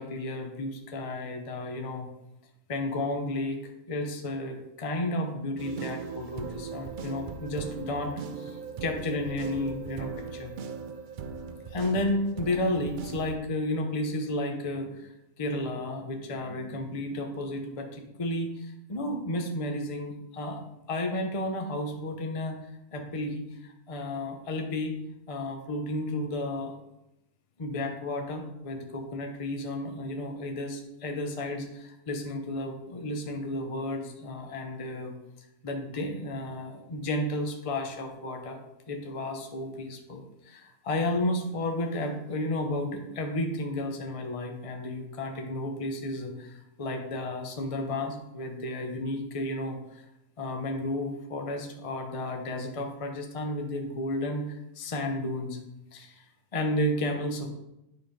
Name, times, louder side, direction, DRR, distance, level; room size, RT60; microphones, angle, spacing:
voice 1, 0.0-2.1 2.7-3.6 3.9-10.5 11.7-15.1 15.4-20.6 20.9-22.6 22.9-25.0 25.3-26.7 27.6-35.1 35.6-38.6 38.9-50.0 50.4-55.6 55.9-56.2 56.5-57.5, left 1 dB, 30° left, 3 dB, 0.8 m, -32 dB
sound 1, 5.6-13.4, right 6 dB, 60° right, 0.5 m, -39 dB
10.0 x 3.7 x 5.2 m, 0.89 s
omnidirectional pair, 1.5 m